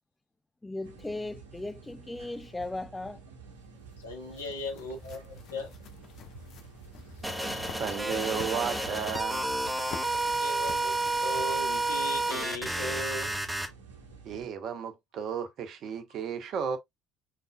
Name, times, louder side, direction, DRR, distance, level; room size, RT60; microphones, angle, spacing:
voice 1, 0.6-3.2 4.3-4.4, left 2 dB, 15° left, 0.6 m, -37 dB
sound 1, 0.8-14.5, right 5 dB, 80° right, 1.2 m, -50 dB
sound 2, 3.5-12.1, left 7 dB, 60° left, 1.0 m, -49 dB
voice 2, 4.0-5.7 7.4-7.6 10.4-10.9 11.2-13.3, left 1 dB, 90° left, 1.6 m, -37 dB
sound 3, 7.2-13.7, right 2 dB, 10° right, 1.4 m, -30 dB
voice 3, 7.8-9.5 14.2-16.8, right 7 dB, 55° right, 1.2 m, -33 dB
5.1 x 4.0 x 2.4 m
hypercardioid pair, 60°, 0 cm